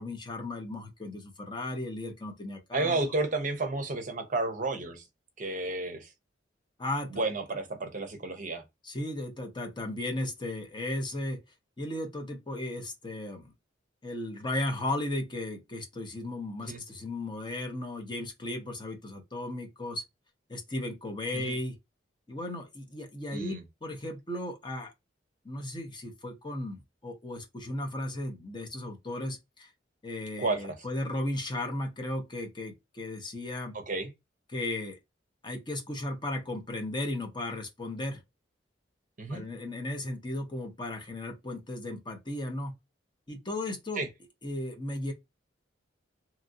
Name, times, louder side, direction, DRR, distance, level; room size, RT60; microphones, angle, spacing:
voice 1, 0.0-3.0 6.8-7.2 8.8-11.4 11.8-13.5 14.0-20.0 20.5-21.8 22.3-24.9 25.4-29.7 30.0-33.8 34.5-35.0 35.4-38.2 39.3-42.8 43.3-44.1 44.4-45.1, left 1 dB, 25° left, 0.6 m, -35 dB
voice 2, 2.7-5.0 5.4-6.1 7.1-8.6 16.6-16.8 21.3-21.6 23.3-23.6 30.4-30.8 33.7-34.1 39.2-39.4 44.0-44.1, right 2 dB, 40° right, 0.6 m, -31 dB
2.9 x 2.5 x 2.5 m
head